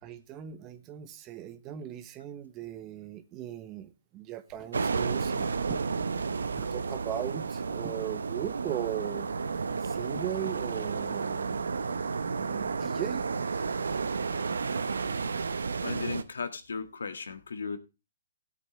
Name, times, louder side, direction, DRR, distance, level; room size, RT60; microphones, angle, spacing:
voice 1, 0.0-5.9 6.5-9.4 9.7-11.6 12.3-13.2, right 12 dB, 25° right, 1.2 m, -38 dB
sound 1, 4.7-16.2, right 5 dB, 75° right, 0.9 m, -32 dB
voice 2, 15.8-17.8, left 5 dB, 75° left, 1.8 m, -36 dB
16.5 x 8.1 x 3.2 m
hypercardioid pair, 135°, 0 cm